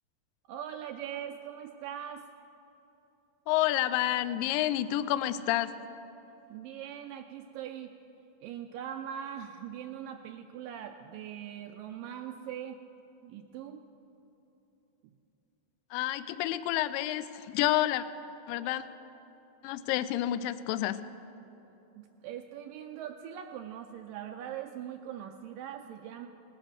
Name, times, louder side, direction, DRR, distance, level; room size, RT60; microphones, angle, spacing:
voice 1, 0.5-2.3 6.5-7.9 8.4-12.8 13.2-13.9 22.0-26.3, right 9 dB, 80° right, 5 dB, 2.0 m, -41 dB
voice 2, 3.5-5.7 15.9-18.1 18.5-18.8 19.6-21.0, left 13 dB, 80° left, 14 dB, 2.1 m, -29 dB
19.0 x 11.5 x 6.5 m, 3.0 s
omnidirectional pair, 4.4 m